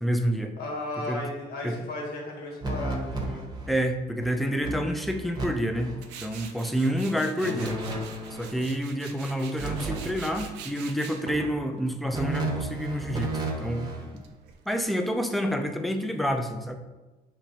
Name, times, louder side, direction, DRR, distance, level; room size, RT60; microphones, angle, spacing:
voice 1, 0.0-0.5 1.1-1.2 1.6-1.8 3.7-5.9 6.2-7.8 8.3-13.9 14.7-16.8, equal, ahead, 5 dB, 0.4 m, -28 dB
voice 2, 0.6-3.5, left 2 dB, 70° left, -1 dB, 1.3 m, -35 dB
sound 1, 2.6-3.8 4.2-4.3 4.6-5.4 5.7-6.0 7.4-8.6 9.6-10.6 12.1-14.1, right 2 dB, 25° right, 0.8 m, -33 dB
Tools, 6.0-14.9, right 6 dB, 85° right, 0.5 m, -45 dB
5.9 x 3.0 x 2.8 m, 1.1 s
cardioid pair, 110°, 17 cm